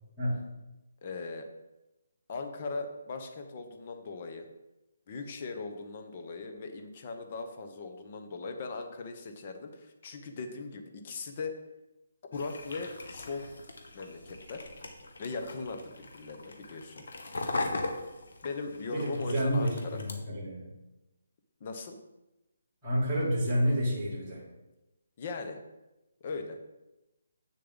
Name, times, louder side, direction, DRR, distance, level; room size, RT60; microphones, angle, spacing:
voice 1, 1.0-1.5 2.3-4.5 5.1-11.5 12.3-13.6 13.9-14.7 15.2-17.0 18.4-20.0 21.6-22.0 25.2-25.6 26.2-26.6, left 4 dB, 25° left, 5 dB, 0.8 m, -39 dB
sound 1, 12.3-20.1, left 2 dB, 60° left, 1.3 m, -40 dB
voice 2, 18.9-20.7 22.8-24.4, equal, 5° right, -16 dB, 3.1 m, -29 dB
8.4 x 6.8 x 3.8 m, 0.98 s
hypercardioid pair, 180°, 0 cm